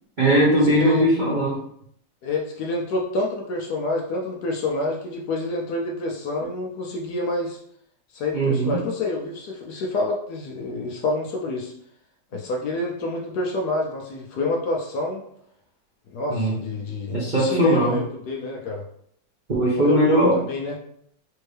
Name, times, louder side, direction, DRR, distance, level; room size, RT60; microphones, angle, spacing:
voice 1, 0.2-1.6 8.3-8.8 16.3-16.6 17.1-18.0 19.5-20.4, right 1 dB, 65° right, -5 dB, 0.4 m, -19 dB
voice 2, 2.2-7.6 8.1-11.7 12.3-15.2 16.1-18.9 19.7-20.8, left 2 dB, 70° left, 0 dB, 1.0 m, -27 dB
4.3 x 2.6 x 3.3 m, 0.67 s
omnidirectional pair, 2.1 m